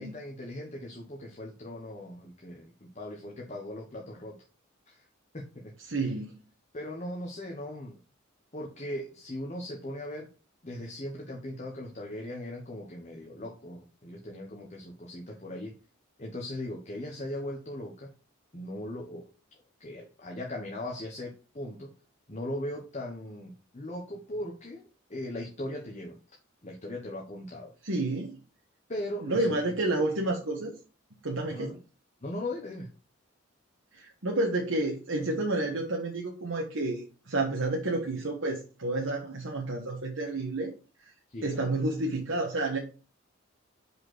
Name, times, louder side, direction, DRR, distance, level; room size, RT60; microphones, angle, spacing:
voice 1, 0.0-4.4 4.9-5.0 5.3-5.7 6.7-8.0 8.5-10.3 10.6-15.8 16.2-18.1 18.5-19.3 19.8-21.9 22.3-26.1 26.6-27.7 28.9-29.6 31.5-31.8 32.2-32.9 41.3-41.6, left 1 dB, 35° left, 0 dB, 1.2 m, -39 dB
voice 2, 5.9-6.3 27.8-28.4 29.2-30.7 31.2-31.7 33.9-40.7 41.4-42.8, right 2 dB, 70° right, -1 dB, 1.3 m, -30 dB
5.4 x 4.6 x 6.1 m, 0.35 s
head